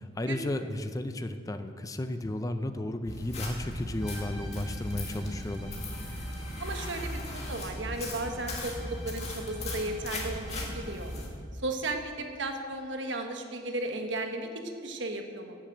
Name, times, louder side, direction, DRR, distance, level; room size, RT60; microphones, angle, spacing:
voice 1, 0.0-5.7, left 1 dB, 20° left, 9 dB, 0.5 m, -34 dB
sound 1, 3.1-11.3, left 1 dB, 35° left, 2.0 m, -37 dB
sound 2, 4.0-11.4, equal, 5° right, 3.8 m, -51 dB
voice 2, 6.6-11.1 11.6-15.6, right 2 dB, 75° right, 4 dB, 1.3 m, -35 dB
12.0 x 7.3 x 7.8 m, 2.2 s
head